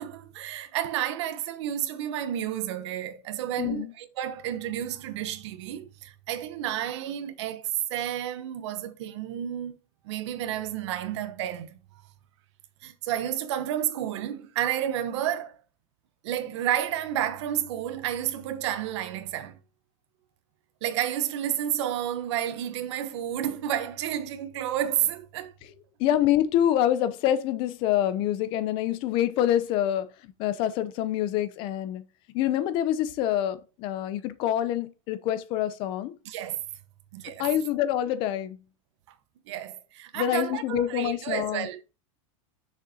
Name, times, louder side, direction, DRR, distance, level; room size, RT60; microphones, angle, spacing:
voice 1, 0.0-9.8 10.0-11.8 12.8-15.6 16.2-19.6 20.8-25.5 36.2-36.6 37.1-37.5 39.5-41.9, right 11 dB, 55° right, 1.0 m, -31 dB
voice 2, 3.6-3.9 26.0-32.0 32.3-36.2 37.4-38.6 40.1-41.7, left 11 dB, 30° left, 0.6 m, -26 dB
6.6 x 6.4 x 2.9 m
supercardioid pair, 175°, 17 cm